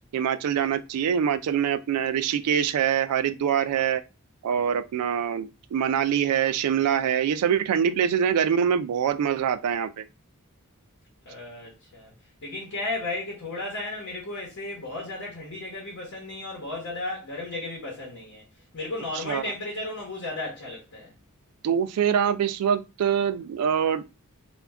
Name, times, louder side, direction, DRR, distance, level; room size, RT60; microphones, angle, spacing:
voice 1, 0.1-4.0 4.4-10.0 19.3-19.4 21.6-24.0, right 8 dB, 90° right, 0.3 m, -24 dB
voice 2, 11.2-12.1 12.4-18.4 18.7-21.1, left 2 dB, 65° left, 0.9 m, -34 dB
2.3 x 2.1 x 3.4 m
head